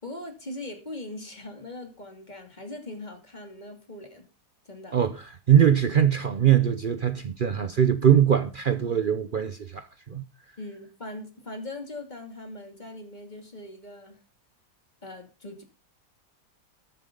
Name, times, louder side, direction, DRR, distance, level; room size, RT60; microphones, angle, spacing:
voice 1, 0.0-4.2 4.6-5.0 10.6-14.2 15.0-15.6, left 2 dB, 25° left, 2.7 m, -40 dB
voice 2, 4.9-10.2, right 9 dB, 80° right, 0.4 m, -22 dB
13.0 x 11.0 x 3.8 m
omnidirectional pair, 2.0 m